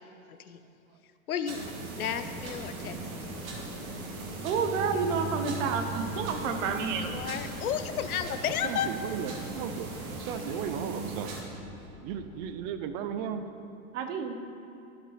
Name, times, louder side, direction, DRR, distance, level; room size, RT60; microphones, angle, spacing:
voice 1, 0.3-0.6 1.3-1.6 2.0-3.0 7.0-8.9, left 9 dB, 80° left, 10 dB, 0.6 m, -32 dB
sound 1, 1.5-11.4, right 3 dB, 75° right, 1.7 m, -38 dB
sound 2, 2.4-12.5, left 3 dB, 10° left, 0.6 m, -49 dB
voice 2, 4.4-7.1 10.4-10.6 13.9-14.3, right 5 dB, 60° right, 6 dB, 1.0 m, -30 dB
voice 3, 8.6-9.9 10.2-13.4, right 8 dB, 30° right, 9 dB, 0.4 m, -36 dB
12.0 x 5.3 x 4.2 m, 2.8 s
hypercardioid pair, 105°, 43 cm